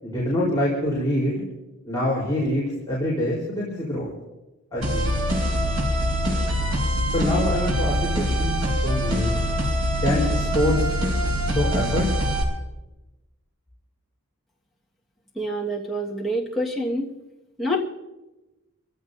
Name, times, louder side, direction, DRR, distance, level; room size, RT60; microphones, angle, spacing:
voice 1, 0.0-1.4 1.8-4.1 4.7-5.1 7.1-8.6 8.8-9.4 10.0-10.8 11.4-12.1, left 1 dB, 15° left, -7 dB, 4.2 m, -25 dB
sound 1, 4.8-12.4, equal, 65° right, 6.2 m, -24 dB
voice 2, 15.3-17.1 17.6-17.9, equal, ahead, -4 dB, 1.7 m, -26 dB
29.5 x 16.0 x 2.7 m, 1.0 s
head